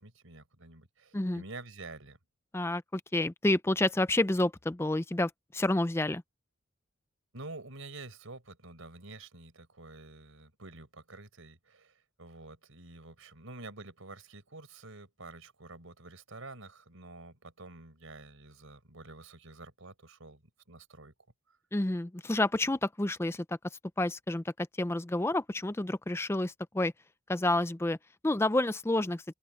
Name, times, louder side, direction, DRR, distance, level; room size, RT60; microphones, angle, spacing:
voice 1, 0.0-2.2 7.3-20.4 20.7-21.1, right 3 dB, 90° right, 4.7 m, -48 dB
voice 2, 2.5-6.2 21.7-23.6 24.0-26.9 27.3-28.0 28.2-29.2, left 1 dB, 10° left, 0.4 m, -29 dB
open air
head